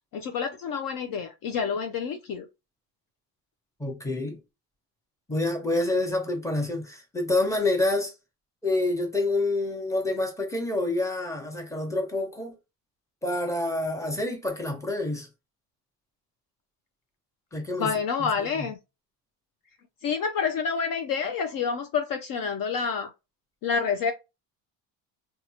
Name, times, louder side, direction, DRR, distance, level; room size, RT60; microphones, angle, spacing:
voice 1, 0.1-2.5 17.8-18.8 20.0-23.1 23.6-24.1, left 6 dB, 50° left, 0.5 m, -28 dB
voice 2, 3.8-4.4 5.3-8.1 8.6-12.5 13.2-15.3 17.5-17.9 18.2-18.3 18.6-18.7, left 2 dB, 5° left, 0.9 m, -27 dB
2.7 x 2.3 x 2.7 m
supercardioid pair, 95°, 47 cm